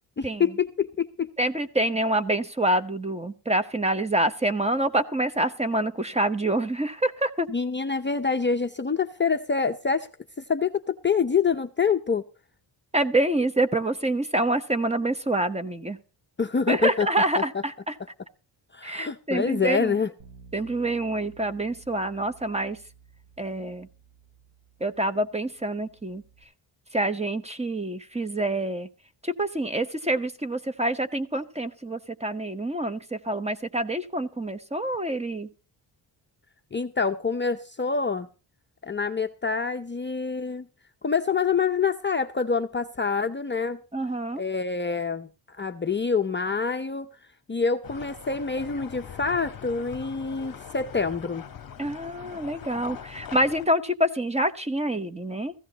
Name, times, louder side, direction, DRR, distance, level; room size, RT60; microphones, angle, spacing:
voice 1, 0.2-1.3 7.5-10.1 10.5-12.2 16.4-17.1 17.4-17.5 18.7-20.1 36.7-38.3 38.8-40.6 41.0-43.8 44.4-47.1 47.5-51.5, left 5 dB, 25° left, 0.7 m, -26 dB
voice 2, 1.4-7.5 12.9-16.0 16.7-17.9 18.8-19.9 20.5-22.8 23.4-23.9 24.8-26.2 26.9-28.9 29.2-35.5 43.9-44.4 51.8-55.5, right 1 dB, 15° right, 1.1 m, -26 dB
Bass guitar, 20.2-26.4, right 5 dB, 70° right, 7.1 m, -54 dB
sound 1, 47.8-53.7, left 8 dB, 45° left, 1.5 m, -42 dB
17.0 x 15.5 x 2.9 m
wide cardioid pair, 155°, 48 cm